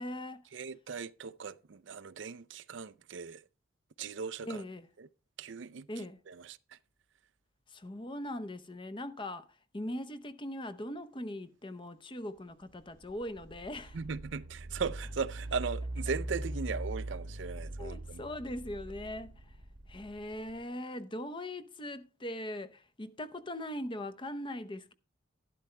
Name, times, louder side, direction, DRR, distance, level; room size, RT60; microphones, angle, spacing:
voice 1, 0.0-0.4 4.4-4.9 5.9-6.2 7.7-9.5 9.7-14.0 17.8-19.6 19.9-24.9, left 1 dB, 25° left, 0.8 m, -40 dB
voice 2, 0.5-3.4 4.0-4.6 5.0-5.1 5.4-6.6 13.9-18.2, right 5 dB, 60° right, 0.5 m, -38 dB
sound 1, 12.6-20.6, right 1 dB, 85° right, 1.3 m, -41 dB
12.0 x 12.0 x 3.3 m
head